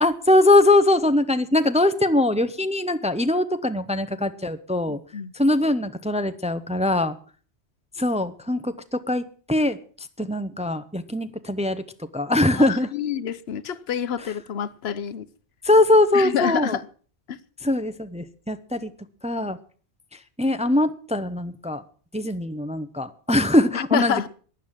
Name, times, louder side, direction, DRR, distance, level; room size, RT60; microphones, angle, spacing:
voice 1, 0.0-5.0 5.3-7.2 8.0-9.2 9.5-9.8 10.2-11.8 12.1-12.9 15.6-16.8 17.6-18.9 19.2-19.6 20.4-21.8 22.1-24.3, left 1 dB, 5° right, 0.7 m, -21 dB
voice 2, 4.9-5.3 12.5-15.3 16.1-16.8 17.3-17.4 23.7-24.3, left 8 dB, 70° left, 1.1 m, -27 dB
15.5 x 10.0 x 7.4 m
omnidirectional pair, 1.1 m